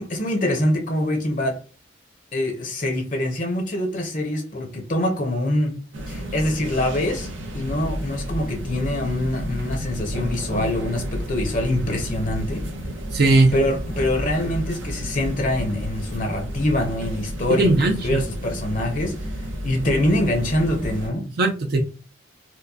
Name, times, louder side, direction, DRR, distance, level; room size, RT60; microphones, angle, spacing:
voice 1, 0.0-1.6 2.3-5.8 6.1-7.3 7.5-12.6 13.5-21.3, left 1 dB, 40° left, 0.7 m, -24 dB
sound 1, 5.9-21.1, equal, 85° right, 0.9 m, -31 dB
voice 2, 13.1-13.5 17.6-18.2 21.4-21.8, right 2 dB, 55° right, 0.5 m, -18 dB
4.4 x 2.1 x 2.7 m
head